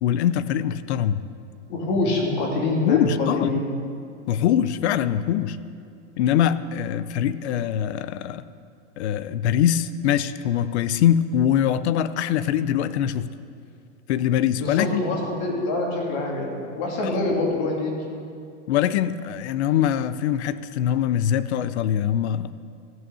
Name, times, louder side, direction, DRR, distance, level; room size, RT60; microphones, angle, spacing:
voice 1, 0.0-1.2 2.8-3.5 4.3-5.6 6.2-8.4 9.0-13.3 14.1-15.0 17.0-17.2 18.7-22.5, left 10 dB, 65° left, 15 dB, 0.6 m, -23 dB
voice 2, 1.7-3.7 14.5-17.9, left 2 dB, 45° left, -1 dB, 2.7 m, -25 dB
14.0 x 6.3 x 7.0 m, 2.3 s
supercardioid pair, 140°, 36 cm